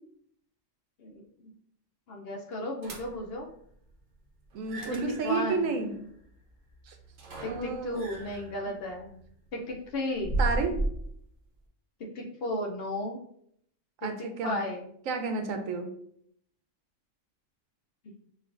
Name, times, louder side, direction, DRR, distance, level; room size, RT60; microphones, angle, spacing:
voice 1, 1.0-1.5 2.1-3.5 5.2-5.8 7.4-9.2 9.5-10.4 12.0-13.2 14.0-14.1 14.4-14.9 18.0-18.1, left 1 dB, 60° left, 1 dB, 0.7 m, -34 dB
sound 1, 2.8-3.4 4.5-11.1, right 1 dB, 45° right, 0.7 m, -35 dB
voice 2, 4.5-6.0 6.9-7.0 7.4-8.0 10.4-10.8 14.0-14.6 15.1-15.9, right 4 dB, 85° right, 5 dB, 1.0 m, -31 dB
5.2 x 2.4 x 2.5 m, 0.67 s
omnidirectional pair, 1.3 m